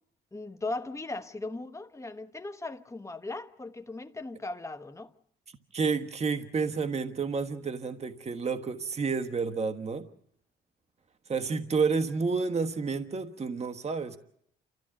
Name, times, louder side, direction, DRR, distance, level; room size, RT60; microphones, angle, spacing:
voice 1, 0.3-5.1, left 2 dB, 15° left, 1.1 m, -38 dB
voice 2, 5.7-10.1 11.3-14.2, right 5 dB, 35° right, 1.3 m, -30 dB
29.0 x 13.5 x 7.7 m
cardioid pair, 90°, 20 cm